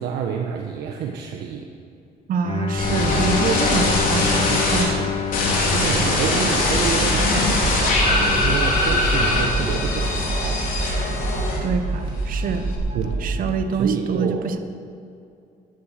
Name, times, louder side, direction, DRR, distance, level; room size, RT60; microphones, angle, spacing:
voice 1, 0.0-1.7 5.7-10.7 12.9-13.3 13.7-14.5, right 7 dB, 75° right, 2 dB, 1.2 m, -28 dB
voice 2, 2.3-5.2 5.5-5.7 6.0-6.2 11.6-12.7 13.2-14.6, right 5 dB, 55° right, 8 dB, 1.2 m, -26 dB
Bowed string instrument, 2.4-7.1, left 5 dB, 35° left, 1.0 m, -27 dB
sound 1, 2.8-4.8 5.3-11.9 12.2-12.8, left 2 dB, 55° left, 3.9 m, -21 dB
sound 2, 6.6-13.5, right 3 dB, 35° right, 2.9 m, -27 dB
13.0 x 10.5 x 6.6 m, 2.5 s
cardioid pair, 110°, 17 cm